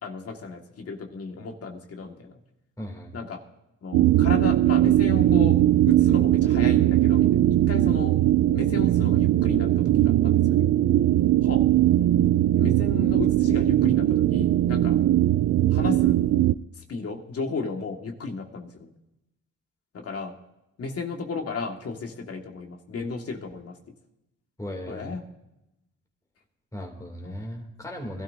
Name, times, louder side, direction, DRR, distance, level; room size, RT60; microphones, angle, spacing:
voice 1, 0.0-2.4 3.1-3.4 3.8-5.6 5.8-8.1 8.5-10.7 11.4-11.6 12.6-15.0 15.7-16.2 16.7-18.9 19.9-20.4 20.8-23.8 24.9-25.2 27.2-27.3, left 4 dB, 50° left, 3 dB, 1.8 m, -34 dB
voice 2, 2.8-3.2 24.6-25.2 26.7-28.2, equal, 10° left, 1 dB, 2.7 m, -37 dB
sound 1, 3.9-16.5, right 13 dB, 60° right, 0.4 m, -20 dB
21.0 x 12.5 x 2.7 m, 0.90 s
cardioid pair, 90°, 30 cm